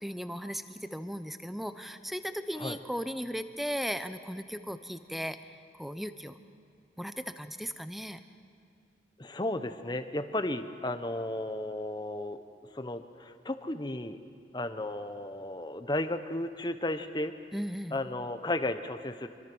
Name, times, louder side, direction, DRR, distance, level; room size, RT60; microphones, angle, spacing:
voice 1, 0.0-5.4 5.7-6.3 7.0-8.2 17.5-18.0, equal, ahead, 10 dB, 0.8 m, -36 dB
voice 2, 9.2-12.4 12.7-14.2 14.5-17.3 17.9-19.3, left 1 dB, 25° left, 9 dB, 1.0 m, -34 dB
26.0 x 24.0 x 6.2 m, 2.4 s
head